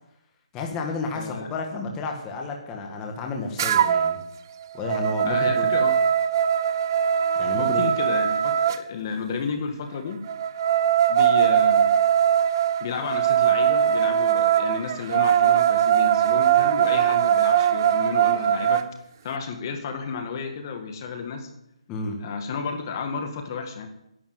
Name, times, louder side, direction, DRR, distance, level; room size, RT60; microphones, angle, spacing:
voice 1, 0.5-4.2 4.7-5.7 7.4-7.8 21.9-22.2, left 3 dB, 15° left, 2 dB, 1.7 m, -31 dB
voice 2, 1.1-1.5 5.2-5.9 7.5-10.2 11.1-11.9 12.8-18.8 19.2-21.5 22.2-23.9, left 5 dB, 35° left, 6 dB, 1.7 m, -32 dB
sound 1, 3.6-4.2 4.6-8.8 10.3-18.9, right 9 dB, 35° right, 0.7 m, -21 dB
11.0 x 10.0 x 8.0 m, 0.80 s
hypercardioid pair, 165°, 3 cm